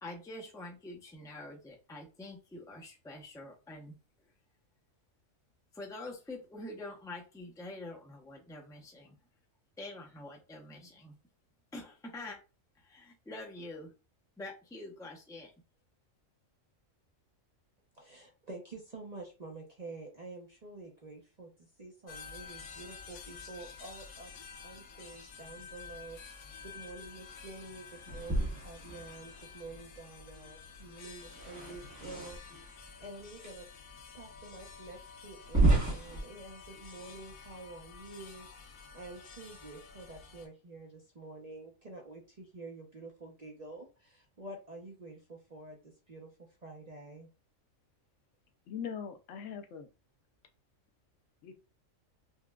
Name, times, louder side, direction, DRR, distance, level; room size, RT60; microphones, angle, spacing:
voice 1, 0.0-3.9 5.7-9.2 9.8-11.2 11.7-12.4 12.8-13.9 14.4-15.5, left 2 dB, 5° left, 0.5 m, -46 dB
voice 2, 17.9-21.5 21.8-24.3 24.6-33.7 34.1-46.3 46.6-47.3, right 2 dB, 40° right, 0.7 m, -48 dB
sound 1, 22.1-40.5, left 5 dB, 90° left, 1.2 m, -50 dB
sound 2, 28.1-29.4 31.2-32.7 33.4-33.5 34.2-34.3 35.4-36.2, right 2 dB, 15° right, 1.0 m, -31 dB
voice 3, 48.7-49.9 51.4-51.5, left 7 dB, 70° left, 0.9 m, -41 dB
5.7 x 2.2 x 2.3 m
omnidirectional pair, 1.4 m